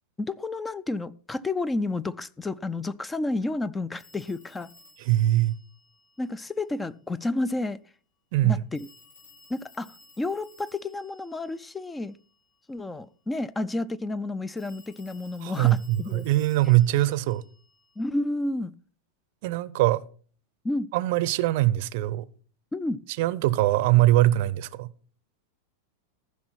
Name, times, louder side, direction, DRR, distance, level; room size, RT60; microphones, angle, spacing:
voice 1, 0.2-4.7 6.2-7.8 8.4-8.9 9.5-12.2 12.7-16.3 18.0-18.8 20.6-20.9 22.7-23.0, left 2 dB, 10° left, 0.4 m, -31 dB
Telephone, 3.9-6.6 8.7-12.4 14.6-18.0, left 3 dB, 75° left, 7.5 m, -56 dB
voice 2, 5.0-5.5 8.3-8.6 15.4-17.4 19.4-20.0 20.9-22.3 23.2-24.9, right 15 dB, 50° right, 0.6 m, -22 dB
14.5 x 6.1 x 5.8 m
figure-of-eight pair, 90°, 0 cm